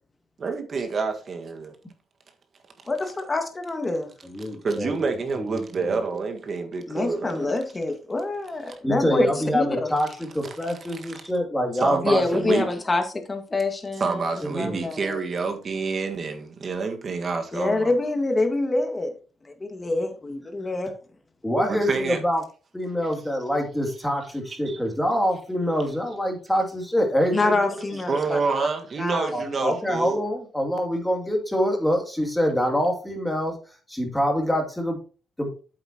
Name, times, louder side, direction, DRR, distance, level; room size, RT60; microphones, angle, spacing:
voice 1, 0.4-1.7 4.6-7.5 10.9-11.1 11.8-12.7 14.0-17.9 21.7-22.2 24.7-24.8 28.1-30.2, right 4 dB, 45° right, 1.6 m, -28 dB
voice 2, 2.9-4.1 6.9-9.9 12.0-14.2 14.6-15.2 17.5-19.1 19.4-20.9 27.3-28.4 29.0-29.5, left 2 dB, 25° left, 1.8 m, -26 dB
voice 3, 4.2-5.0 5.4-6.0 8.8-12.2 14.5-14.8 21.4-22.4 22.7-27.8 29.3-33.5 33.9-35.0 35.4-35.5, equal, 5° left, 2.6 m, -25 dB
8.1 x 8.0 x 2.9 m
cardioid pair, 90°, 0 cm